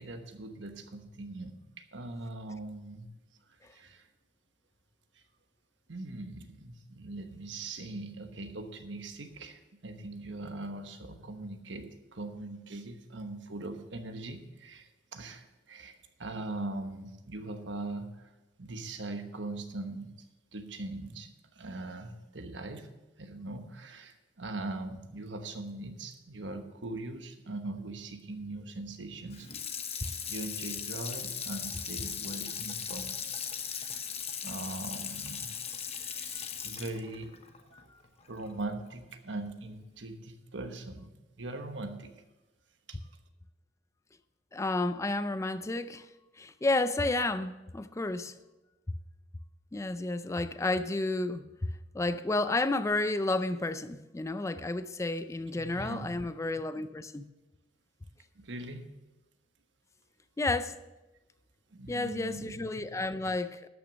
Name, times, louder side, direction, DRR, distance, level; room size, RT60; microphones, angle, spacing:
voice 1, 0.0-3.1 3.7-4.1 5.9-18.3 18.6-20.1 20.5-22.9 23.2-29.5 30.0-33.2 33.6-34.0 34.4-35.5 36.1-37.3 38.3-42.2 42.9-43.0 55.4-56.1 58.3-58.9 61.7-62.9, right 2 dB, 85° right, 1.2 m, -41 dB
Water tap faucet / Sink (filling or washing), 29.3-38.5 38.9-39.0, left 7 dB, 35° left, 0.9 m, -38 dB
voice 2, 44.5-46.1 46.4-48.3 49.7-51.5 51.9-57.3 60.4-60.8 61.9-63.7, left 2 dB, 15° left, 0.4 m, -31 dB
12.5 x 6.1 x 6.2 m
head